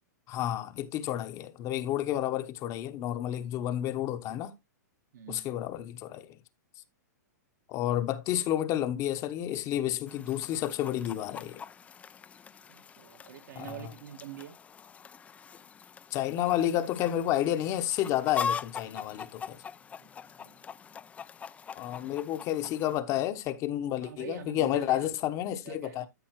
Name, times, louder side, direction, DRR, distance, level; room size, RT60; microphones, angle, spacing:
voice 1, 0.3-4.5 5.3-6.3 7.7-11.6 13.6-13.9 16.1-19.6 21.8-26.1, left 12 dB, 35° left, 1.0 m, -30 dB
voice 2, 5.1-5.5 12.7-14.6 20.0-20.1 20.4-20.6 24.0-25.2 25.6-26.1, right 9 dB, 70° right, 1.9 m, -44 dB
Chicken rooster, 10.1-23.0, left 6 dB, 15° left, 0.5 m, -42 dB
13.0 x 5.3 x 3.1 m
hypercardioid pair, 135°, 10 cm